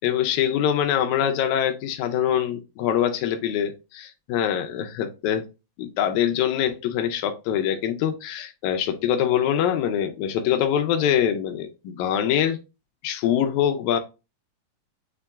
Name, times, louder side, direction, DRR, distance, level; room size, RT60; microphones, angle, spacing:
voice 1, 0.0-5.5 5.8-12.6 13.0-14.0, left 9 dB, 85° left, 1.7 m, -24 dB
7.2 x 2.9 x 2.3 m
omnidirectional pair, 4.0 m